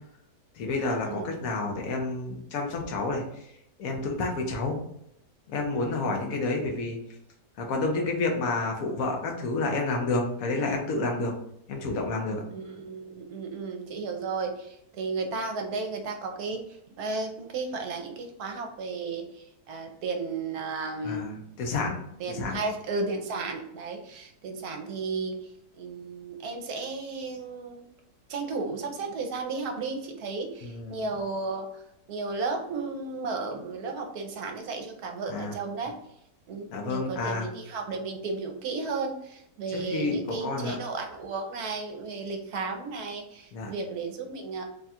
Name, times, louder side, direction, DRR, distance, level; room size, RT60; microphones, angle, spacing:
voice 1, 0.5-3.2 3.8-4.8 5.5-7.0 7.6-11.3 11.7-12.4 21.0-22.0 22.3-22.6 30.6-31.1 35.3-35.5 36.7-37.5 39.7-40.8 43.5-43.7, left 3 dB, 60° left, 1 dB, 1.2 m, -29 dB
voice 2, 12.5-21.3 22.2-27.9 28.3-31.8 32.1-35.9 36.5-44.6, right 3 dB, 70° right, 3 dB, 1.1 m, -34 dB
3.6 x 2.4 x 4.1 m, 0.76 s
omnidirectional pair, 1.8 m